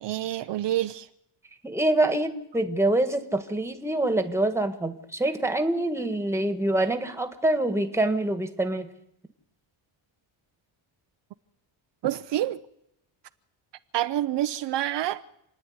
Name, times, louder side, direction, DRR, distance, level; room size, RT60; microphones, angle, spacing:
voice 1, 0.0-1.1 12.0-12.6 13.9-15.2, right 13 dB, 60° right, 0.7 m, -27 dB
voice 2, 1.6-8.9, right 1 dB, 5° right, 1.7 m, -25 dB
28.5 x 9.6 x 9.6 m
cardioid pair, 125°, 48 cm